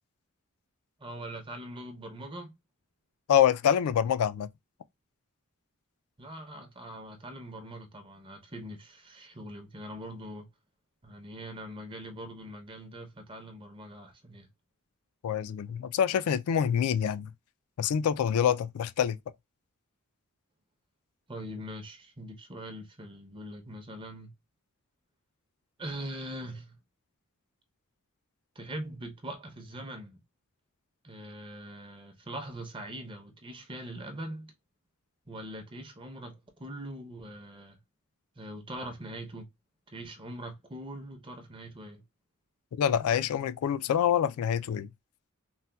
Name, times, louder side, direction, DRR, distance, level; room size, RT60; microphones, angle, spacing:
voice 1, 1.0-2.5 6.2-10.5 11.0-14.5 21.3-24.3 25.8-26.8 28.6-30.2 31.0-34.5 35.3-37.8 38.4-39.5 39.9-42.0, right 1 dB, 25° right, 0.7 m, -42 dB
voice 2, 3.3-4.5 15.2-17.3 17.8-19.2 42.8-44.9, left 9 dB, 80° left, 0.3 m, -26 dB
4.0 x 2.1 x 2.2 m
head